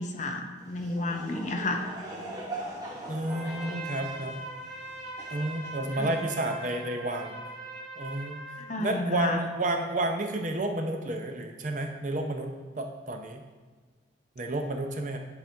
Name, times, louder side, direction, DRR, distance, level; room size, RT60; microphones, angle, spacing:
voice 1, 0.0-1.9 6.0-6.1 8.6-9.4, left 2 dB, 40° left, 4 dB, 0.6 m, -31 dB
Laughter / Crowd, 0.6-6.3, right 2 dB, 20° right, 1.2 m, -42 dB
voice 2, 3.1-4.5 5.3-7.4 8.0-8.4 8.8-13.4 14.4-15.2, right 2 dB, 40° right, 4 dB, 0.6 m, -31 dB
Trumpet, 3.2-8.7, right 1 dB, ahead, 1.5 m, -41 dB
10.0 x 4.2 x 3.4 m, 1.4 s
head